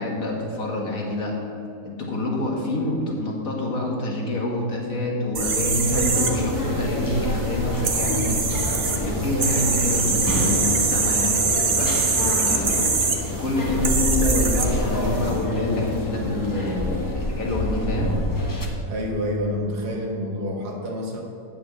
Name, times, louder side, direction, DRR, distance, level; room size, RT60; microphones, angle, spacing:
voice 1, 0.0-1.3 1.8-8.4 9.0-12.9 13.3-18.1, left 2 dB, 55° left, -1 dB, 2.0 m, -27 dB
sound 1, 5.3-15.3, right 4 dB, 45° right, 1.0 m, -24 dB
sound 2, 5.8-18.7, left 1 dB, 15° left, 0.8 m, -27 dB
voice 2, 5.8-6.6 18.9-21.2, equal, 75° right, 0 dB, 1.9 m, -28 dB
8.8 x 5.6 x 7.8 m, 2.7 s
omnidirectional pair, 1.8 m